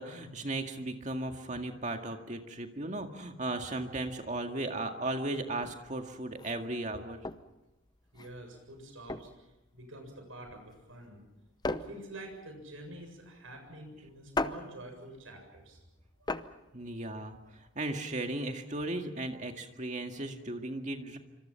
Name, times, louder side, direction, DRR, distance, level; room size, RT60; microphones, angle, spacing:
voice 1, 0.0-7.2 16.7-21.2, right 2 dB, 35° right, 4 dB, 2.0 m, -36 dB
sound 1, 5.5-17.8, left 2 dB, 20° left, 0.7 m, -40 dB
voice 2, 8.1-11.2 11.7-15.8 16.2-16.5 16.9-17.0, right 1 dB, 75° right, 4 dB, 7.4 m, -48 dB
26.5 x 25.5 x 5.8 m, 0.99 s
head